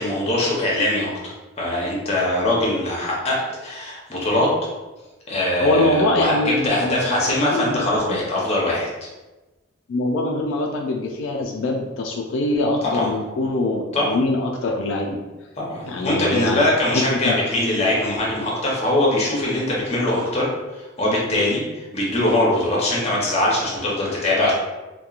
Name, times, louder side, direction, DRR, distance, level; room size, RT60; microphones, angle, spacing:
voice 1, 0.0-4.5 5.3-8.9 12.8-13.1 13.9-14.2 15.6-24.5, left 1 dB, 35° left, -4 dB, 0.7 m, -22 dB
voice 2, 5.6-8.2 9.9-13.8 14.1-15.2 15.9-16.7 17.1-17.4, left 2 dB, 85° left, 0 dB, 0.3 m, -23 dB
2.8 x 2.2 x 2.4 m, 1.1 s
head